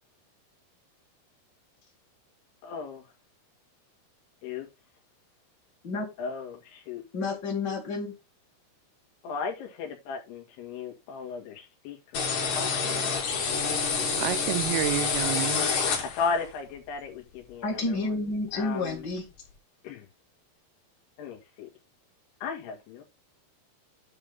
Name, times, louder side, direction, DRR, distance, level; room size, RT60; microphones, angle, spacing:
voice 1, 2.6-3.0 4.4-4.7 6.2-7.0 9.2-14.2 16.0-18.3 18.5-19.1 19.8-20.1 21.2-21.7 22.4-23.0, left 5 dB, 80° left, 4.0 m, -36 dB
voice 2, 7.1-8.1 17.6-19.2, left 3 dB, 40° left, 1.6 m, -30 dB
sound 1, 12.1-16.5, left 5 dB, 55° left, 3.7 m, -28 dB
voice 3, 14.2-15.7, right 15 dB, 80° right, 2.5 m, -29 dB
9.9 x 3.5 x 5.3 m
omnidirectional pair, 4.6 m